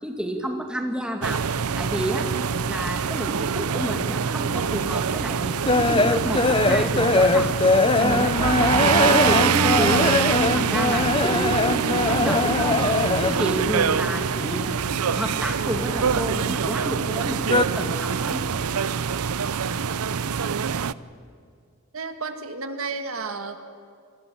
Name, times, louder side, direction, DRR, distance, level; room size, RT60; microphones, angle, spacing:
voice 1, 0.0-1.4 1.8-2.3 2.7-7.6 8.0-10.0 10.3-11.6 11.9-12.8 13.2-14.8 15.1-18.5, equal, 5° right, 3 dB, 2.3 m, -29 dB
sound 1, 1.2-20.9, right 6 dB, 90° right, 0.6 m, -24 dB
sound 2, 5.0-13.6 13.8-15.0 15.3-16.7 17.0-17.6, left 3 dB, 25° left, 0.6 m, -22 dB
voice 2, 21.9-23.6, right 4 dB, 70° right, 8 dB, 1.8 m, -32 dB
27.5 x 21.0 x 8.6 m, 2.2 s
head